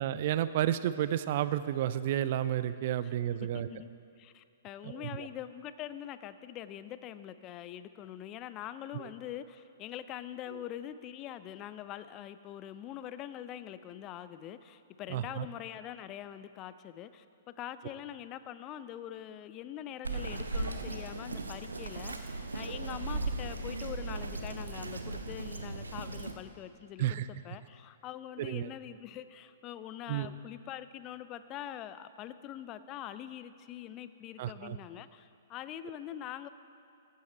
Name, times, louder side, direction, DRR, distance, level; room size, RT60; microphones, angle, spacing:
voice 1, 0.0-3.7 4.8-5.3 8.9-9.0 15.1-15.5 27.0-27.3 28.4-28.7 30.1-30.3 34.4-34.8, right 11 dB, 50° right, 14 dB, 0.4 m, -31 dB
voice 2, 3.5-3.9 4.2-36.5, left 11 dB, 30° left, 13 dB, 0.4 m, -44 dB
Bird vocalization bird call bird song, 20.0-26.3, right 2 dB, 80° right, 0.8 m, -37 dB
14.5 x 8.3 x 4.3 m, 2.4 s
figure-of-eight pair, 115°, 0 cm